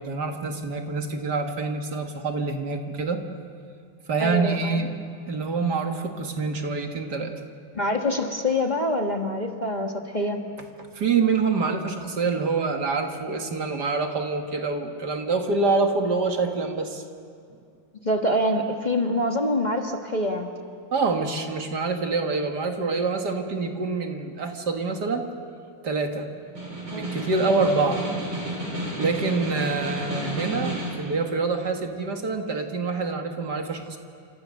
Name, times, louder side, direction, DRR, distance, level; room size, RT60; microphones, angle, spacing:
voice 1, 0.0-3.2 4.1-4.9 5.2-7.3 10.9-17.0 20.9-25.2 25.8-26.3 26.9-28.0 29.0-34.0, right 4 dB, 65° right, 4 dB, 2.4 m, -26 dB
voice 2, 4.2-4.8 7.7-10.4 18.0-20.5 26.9-27.1 27.5-28.1, left 1 dB, 25° left, 2 dB, 1.6 m, -26 dB
Snare drum, 26.4-31.1, right 1 dB, 80° right, 6.7 m, -31 dB
29.5 x 26.5 x 6.5 m, 2.3 s
omnidirectional pair, 2.0 m